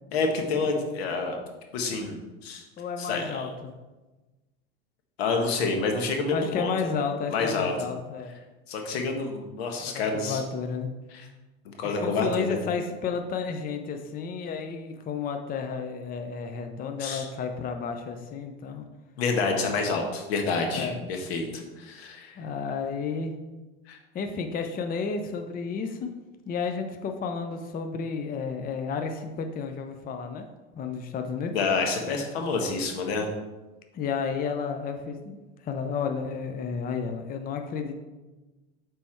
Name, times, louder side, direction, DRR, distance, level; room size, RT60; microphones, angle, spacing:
voice 1, 0.1-1.4 1.7-2.2 2.4-2.6 3.0-3.5 5.2-6.7 7.3-7.7 8.7-10.4 11.1-11.3 11.8-12.6 17.0-17.3 19.2-22.3 23.9-24.0 31.5-33.3, left 4 dB, 75° left, 3 dB, 1.3 m, -28 dB
voice 2, 2.8-3.7 6.3-8.3 9.8-10.9 11.8-18.9 20.7-21.0 22.4-23.3 24.1-26.1 26.5-30.5 30.8-31.5 33.9-35.4 35.6-38.0, left 5 dB, 30° left, 6 dB, 0.6 m, -32 dB
7.4 x 3.5 x 4.4 m, 1.2 s
hypercardioid pair, 95°, 31 cm